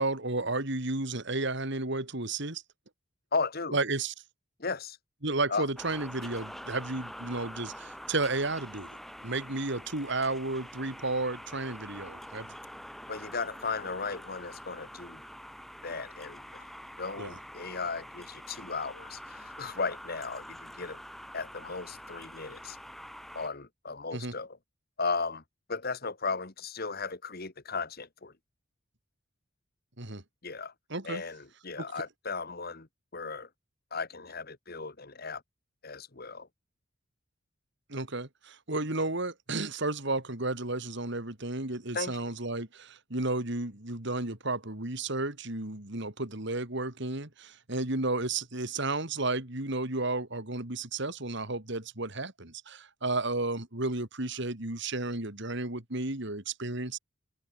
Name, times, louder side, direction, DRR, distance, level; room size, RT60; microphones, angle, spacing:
voice 1, 0.0-2.6 3.7-4.1 5.2-12.5 17.2-17.3 24.1-24.3 30.0-30.2 30.9-31.2 31.8-31.9 37.9-57.0, right 2 dB, 60° right, 3.1 m, -32 dB
voice 2, 3.3-3.8 4.6-5.0 5.5-5.7 13.1-15.2 15.8-16.6 17.0-21.0 21.3-22.8 23.3-24.6 25.0-25.4 25.7-28.3 30.4-30.7 31.0-32.9 33.1-33.5 33.9-35.4 35.8-36.5 41.9-42.2, left 4 dB, 45° left, 1.6 m, -36 dB
sound 1, 5.8-23.5, equal, ahead, 5.9 m, -46 dB
open air
head